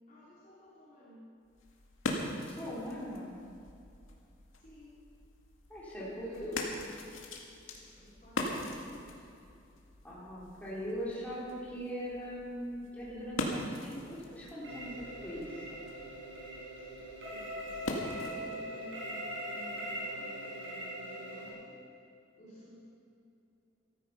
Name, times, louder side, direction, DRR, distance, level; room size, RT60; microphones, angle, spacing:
voice 1, 0.1-1.3 4.6-5.0 6.2-7.2 7.6-9.2 17.2-21.8 22.4-22.8, equal, 35° left, -9 dB, 3.8 m, -52 dB
sound 1, 1.4-18.6, left 1 dB, 85° left, 2.0 m, -42 dB
voice 2, 2.4-3.4 5.7-6.6 10.0-14.9 15.2-15.8, equal, 10° left, -8 dB, 3.5 m, -40 dB
sound 2, 14.6-21.5, equal, 75° right, 4.3 m, -41 dB
14.0 x 14.0 x 5.6 m, 2.6 s
head